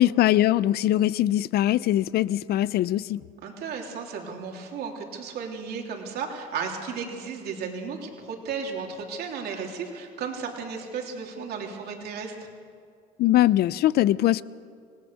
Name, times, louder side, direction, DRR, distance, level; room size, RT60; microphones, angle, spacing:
voice 1, 0.0-3.2 13.2-14.4, left 14 dB, 70° left, 18 dB, 0.6 m, -21 dB
voice 2, 3.4-12.3, right 5 dB, 70° right, 1 dB, 3.2 m, -34 dB
26.5 x 18.5 x 6.4 m, 2.2 s
cardioid pair, 110°, 17 cm